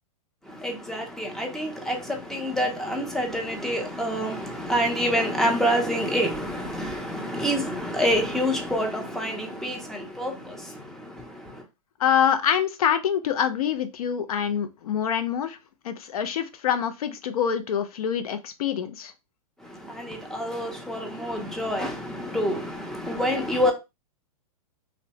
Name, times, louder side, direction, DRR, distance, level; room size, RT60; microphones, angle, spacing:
voice 1, 0.4-11.6 19.6-23.7, equal, ahead, 0.4 m, -27 dB
voice 2, 12.0-15.6 15.8-19.1, left 8 dB, 80° left, 0.5 m, -25 dB
3.0 x 2.0 x 2.7 m
hypercardioid pair, 145°, 19 cm